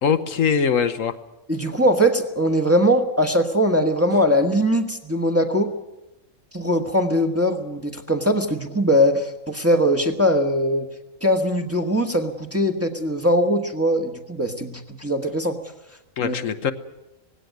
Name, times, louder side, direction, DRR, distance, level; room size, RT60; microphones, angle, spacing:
voice 1, 0.0-1.1 16.2-16.7, left 6 dB, 75° left, 9 dB, 1.3 m, -22 dB
voice 2, 1.5-5.7 6.5-10.9 11.2-15.6 16.2-16.4, equal, 10° right, 4 dB, 1.3 m, -21 dB
19.0 x 16.5 x 9.4 m, 0.97 s
omnidirectional pair, 1.4 m